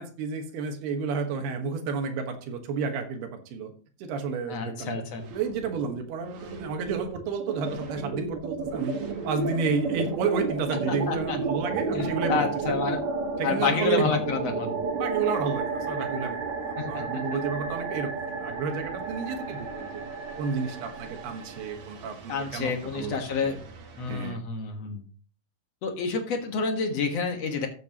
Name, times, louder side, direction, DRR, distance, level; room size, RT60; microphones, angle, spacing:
voice 1, 0.0-3.7 4.0-5.0 5.3-9.0 9.3-13.0 13.4-14.2 15.0-20.0 20.4-23.6 24.1-24.4, right 5 dB, 85° right, 5 dB, 3.4 m, -31 dB
voice 2, 4.5-5.2 10.9-11.4 11.9-13.0 13.4-14.8 16.8-17.0 22.3-23.6 24.0-25.0 25.8-27.7, left 5 dB, 55° left, 4 dB, 2.0 m, -29 dB
sound 1, 5.2-6.0 6.3-24.3, right 4 dB, 55° right, 2.4 m, -33 dB
14.5 x 8.3 x 2.9 m, 0.41 s
omnidirectional pair, 4.4 m